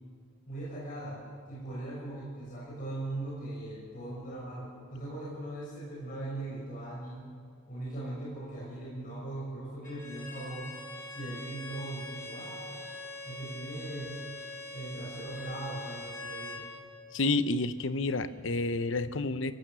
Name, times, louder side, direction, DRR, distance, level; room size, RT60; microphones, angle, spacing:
voice 1, 0.5-1.2 1.5-7.2 7.7-10.7 11.1-12.8 13.2-14.3 14.7-16.6, right 2 dB, 40° left, -6 dB, 6.9 m, -39 dB
Bowed string instrument, 9.8-16.7, left 2 dB, 10° left, 3.0 m, -43 dB
voice 2, 17.1-19.5, left 2 dB, 65° left, 12 dB, 0.8 m, -29 dB
25.0 x 17.0 x 7.0 m, 2.2 s
head